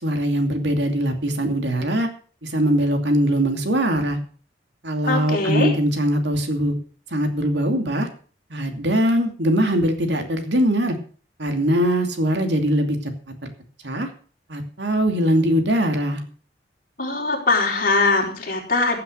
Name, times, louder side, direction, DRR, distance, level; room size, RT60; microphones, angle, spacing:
voice 1, 0.0-2.1 2.4-4.2 4.8-6.8 7.1-8.1 8.5-11.0 11.4-13.1 13.4-13.5 13.8-14.1 14.5-16.2, equal, 75° right, 5 dB, 2.6 m, -21 dB
voice 2, 5.1-5.7 17.0-19.0, left 3 dB, 50° left, -1 dB, 4.3 m, -21 dB
15.0 x 7.8 x 6.4 m, 0.41 s
head